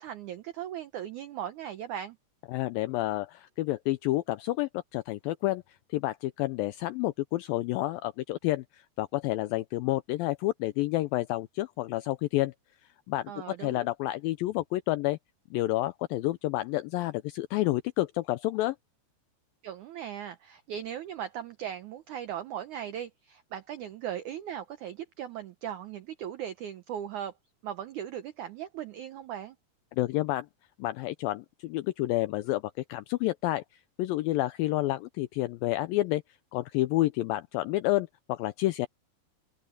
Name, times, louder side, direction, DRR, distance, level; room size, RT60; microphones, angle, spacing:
voice 1, 0.0-2.2 13.3-13.9 19.6-27.3 27.6-29.6, right 10 dB, 80° right, 1.7 m, -38 dB
voice 2, 2.5-5.6 5.9-12.5 13.1-15.2 15.5-18.8 29.9-30.5 30.8-32.6 32.9-33.6 34.0-36.2 36.5-38.9, left 17 dB, 85° left, 2.0 m, -29 dB
open air
omnidirectional pair, 4.7 m